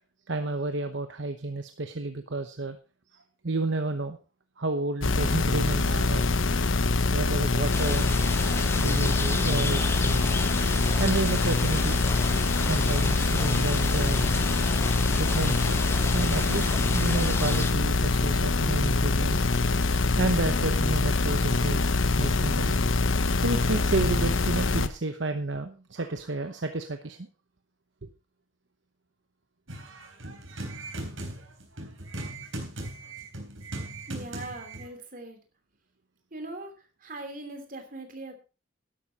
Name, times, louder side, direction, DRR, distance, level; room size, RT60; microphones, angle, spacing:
voice 1, 0.3-2.8 3.1-3.2 3.4-4.2 4.6-6.2 7.1-8.1 8.8-10.3 11.0-12.0 12.7-14.4 15.2-15.8 16.1-19.5 20.2-21.9 22.2-22.8 23.4-27.2, right 2 dB, 65° right, 7 dB, 1.0 m, -31 dB
sound 1, 5.0-24.9, left 3 dB, 75° left, 1.1 m, -24 dB
sound 2, 7.7-17.7, left 3 dB, 10° left, 0.8 m, -34 dB
sound 3, 29.7-34.9, right 1 dB, 80° right, 3.9 m, -38 dB
voice 2, 34.1-35.4 36.3-36.7 37.0-38.3, right 2 dB, 45° right, 5 dB, 2.9 m, -40 dB
12.5 x 11.5 x 4.2 m, 0.33 s
head